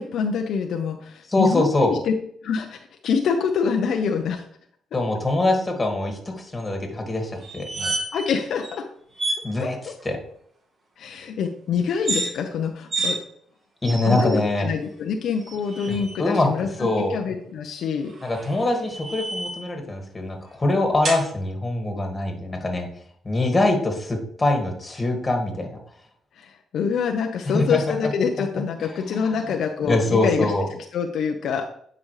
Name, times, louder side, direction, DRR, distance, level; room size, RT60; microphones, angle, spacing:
voice 1, 0.0-2.1 2.4-4.5 8.1-8.8 9.6-9.7 11.0-13.2 14.0-18.1 26.4-31.7, left 6 dB, 70° left, 4 dB, 0.7 m, -26 dB
voice 2, 1.3-1.9 4.9-7.9 9.4-9.8 10.0-10.2 13.8-14.7 15.9-16.5 16.8-17.2 18.2-22.9 23.2-25.8 27.5-28.1 28.8-29.4 29.8-30.6, left 2 dB, 20° left, 4 dB, 2.0 m, -23 dB
sound 1, 7.4-8.3 8.6-8.7 9.2-9.4 11.9-12.3 12.9-13.2 13.8-14.4 15.4-16.2 18.1-19.7 21.0-21.2, right 2 dB, 45° right, 2.1 m, -29 dB
9.9 x 5.2 x 3.2 m, 0.63 s
cardioid pair, 90°, 0 cm